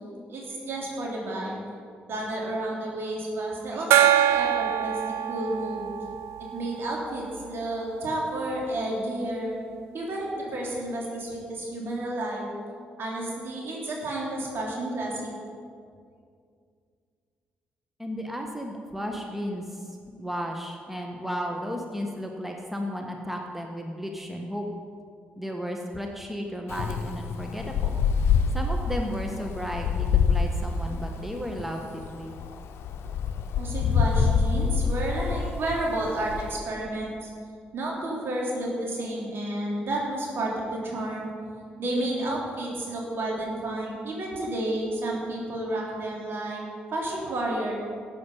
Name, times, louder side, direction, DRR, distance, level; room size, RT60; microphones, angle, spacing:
voice 1, 0.3-1.6 2.1-5.9 6.4-9.6 9.9-12.5 13.0-15.3 33.6-37.3 37.7-41.3 41.8-46.6 46.9-47.8, right 1 dB, 55° right, -2 dB, 3.4 m, -31 dB
Gong, 3.9-7.2, right 11 dB, 70° right, 0.6 m, -24 dB
voice 2, 18.0-24.7 25.4-28.0 28.5-32.3, equal, 5° right, 2 dB, 1.5 m, -34 dB
Wind, 26.7-36.6, left 6 dB, 65° left, 0.8 m, -26 dB
14.0 x 8.7 x 5.6 m, 2.2 s
hypercardioid pair, 45°, 5 cm